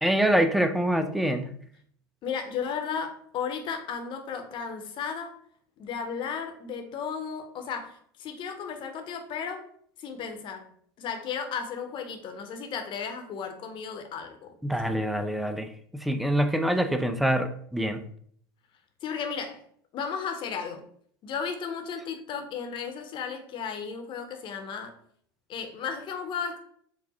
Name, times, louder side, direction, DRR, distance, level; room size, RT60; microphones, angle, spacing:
voice 1, 0.0-1.5 14.6-18.1, right 1 dB, ahead, 9 dB, 0.4 m, -25 dB
voice 2, 2.2-5.3 5.8-9.6 10.0-10.6 11.0-14.5 19.0-19.6 19.9-20.8 21.2-24.9 25.5-26.6, left 6 dB, 40° left, 5 dB, 0.9 m, -34 dB
4.7 x 2.1 x 4.1 m, 0.62 s
hypercardioid pair, 85°, 13 cm